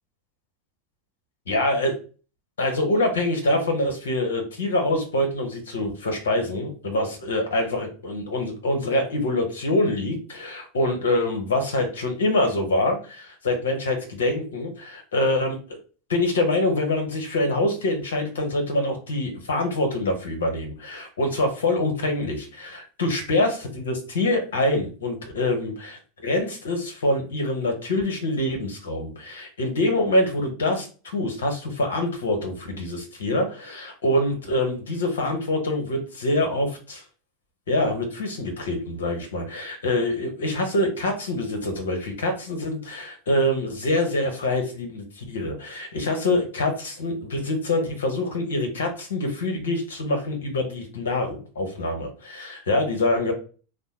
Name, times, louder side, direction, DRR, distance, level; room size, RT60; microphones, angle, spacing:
voice 1, 1.5-1.9 2.6-15.6 16.1-37.0 37.7-53.3, left 1 dB, 80° left, 4 dB, 1.3 m, -25 dB
3.4 x 2.2 x 4.3 m, 0.37 s
hypercardioid pair, 90°, 0 cm